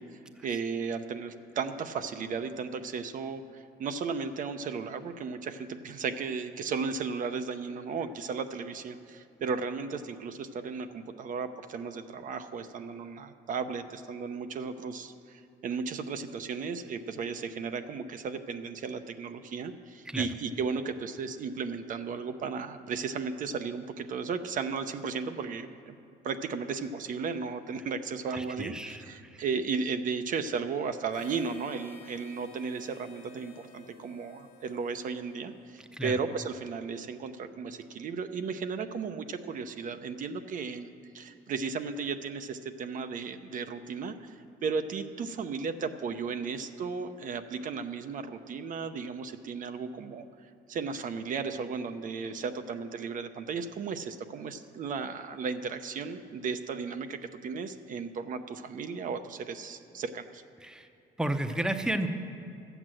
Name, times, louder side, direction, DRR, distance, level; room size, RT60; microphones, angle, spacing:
voice 1, 0.0-26.0 26.2-60.4, right 5 dB, 50° right, 9 dB, 0.7 m, -35 dB
voice 2, 28.3-29.5 35.9-36.2 60.6-60.9 61.2-62.1, right 1 dB, 5° right, 7 dB, 0.7 m, -33 dB
Harmonica, 31.1-35.8, left 6 dB, 90° left, 1.3 m, -55 dB
12.5 x 8.0 x 7.6 m, 2.7 s
cardioid pair, 110°, 17 cm